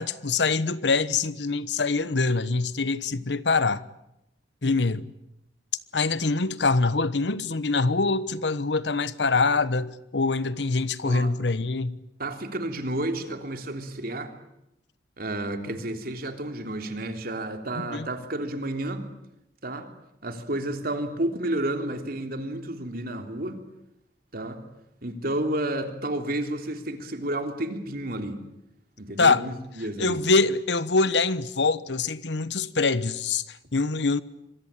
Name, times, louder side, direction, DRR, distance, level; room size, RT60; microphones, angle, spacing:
voice 1, 0.0-3.8 4.6-5.1 5.9-12.0 17.8-18.1 29.2-29.4 30.0-34.2, left 3 dB, 90° left, 1.1 m, -24 dB
voice 2, 12.2-14.3 15.2-19.1 19.6-19.9 20.2-23.6 24.3-24.6 25.0-28.4 29.0-30.2, right 1 dB, 60° right, 3.3 m, -31 dB
26.0 x 22.0 x 8.9 m
head